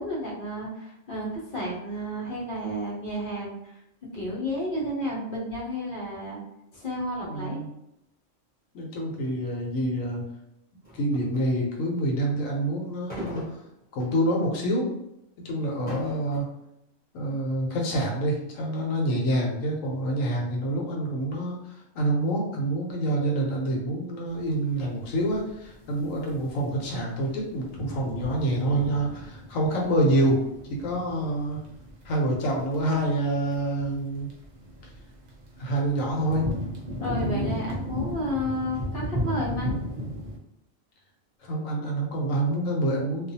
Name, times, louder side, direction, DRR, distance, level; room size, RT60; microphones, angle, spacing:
voice 1, 0.0-6.4 6.7-7.6 36.9-39.7, equal, 50° left, -5 dB, 0.7 m, -32 dB
voice 2, 7.2-7.7 8.7-10.2 10.9-13.4 13.9-14.9 15.4-16.5 17.1-30.4 30.7-31.6 32.0-34.3 35.6-36.5 41.4-43.3, right 1 dB, 80° left, -1 dB, 1.1 m, -27 dB
sound 1, 10.8-11.6 13.1-14.3 14.8-14.9 15.6-16.4, right 1 dB, 10° left, 0.8 m, -39 dB
sound 2, 24.4-40.4, equal, 60° right, 0.4 m, -35 dB
2.4 x 2.3 x 2.6 m, 0.82 s
omnidirectional pair, 1.4 m